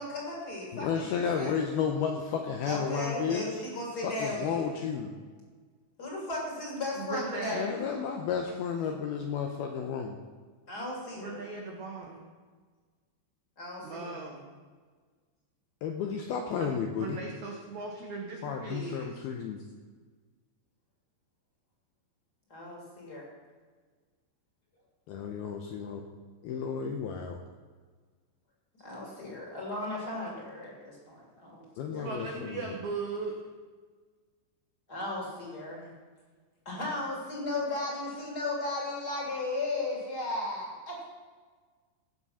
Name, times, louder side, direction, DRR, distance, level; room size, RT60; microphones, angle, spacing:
voice 1, 0.0-1.6 2.6-4.7 6.0-7.8 10.7-11.4 13.6-14.2 22.5-23.3 28.8-32.1 34.9-35.9 36.6-41.0, left 2 dB, 25° left, -2 dB, 2.7 m, -36 dB
voice 2, 0.7-3.4 4.0-5.1 7.5-10.2 15.8-17.2 18.4-19.6 25.1-26.0 26.4-27.4 31.8-32.7, left 7 dB, 80° left, 3 dB, 2.3 m, -32 dB
voice 3, 6.9-7.9 10.7-10.8 11.2-12.3 13.8-14.5 16.5-19.1 31.9-33.4, right 4 dB, 90° right, 0 dB, 1.6 m, -38 dB
18.0 x 7.4 x 5.7 m, 1.5 s
omnidirectional pair, 5.3 m